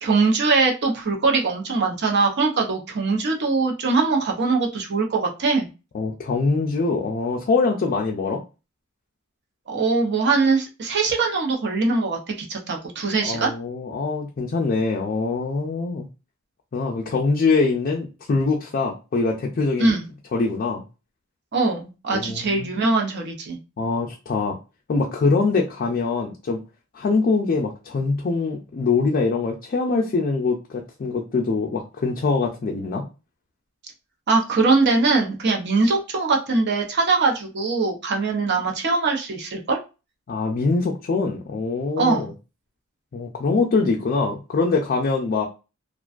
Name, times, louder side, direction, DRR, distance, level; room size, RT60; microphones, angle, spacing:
voice 1, 0.0-5.7 9.7-13.5 19.8-20.1 21.5-23.6 34.3-39.8 42.0-42.3, right 3 dB, 55° right, 2 dB, 0.6 m, -22 dB
voice 2, 5.9-8.4 13.2-16.1 16.7-20.0 20.3-20.8 22.1-22.7 23.8-24.6 24.9-26.6 26.9-33.0 40.3-42.3 43.1-45.5, left 4 dB, 45° left, 0 dB, 0.4 m, -23 dB
2.4 x 2.2 x 2.4 m, 0.30 s
head